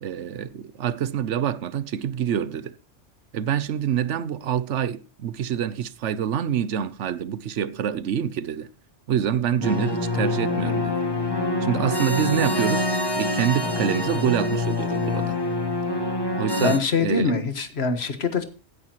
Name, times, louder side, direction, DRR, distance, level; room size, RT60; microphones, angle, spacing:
voice 1, 0.0-2.7 3.3-8.7 9.1-11.0 11.6-12.9 13.2-15.4 16.3-17.3, right 9 dB, 80° right, 1.0 m, -26 dB
sound 1, 9.6-16.8, left 2 dB, 20° left, 1.3 m, -25 dB
voice 2, 16.6-18.4, left 4 dB, 60° left, 1.6 m, -24 dB
16.5 x 9.8 x 3.0 m
omnidirectional pair, 1.2 m